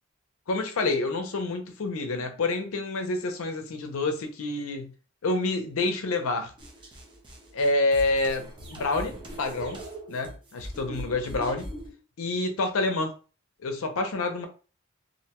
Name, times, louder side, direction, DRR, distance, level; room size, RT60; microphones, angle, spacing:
voice 1, 0.5-4.9 5.2-6.5 7.5-9.8 10.1-11.7 12.2-13.1 13.6-14.5, left 2 dB, 75° left, 0.5 m, -28 dB
sound 1, 6.6-11.9, right 1 dB, 25° right, 0.5 m, -41 dB
2.5 x 2.1 x 2.8 m
head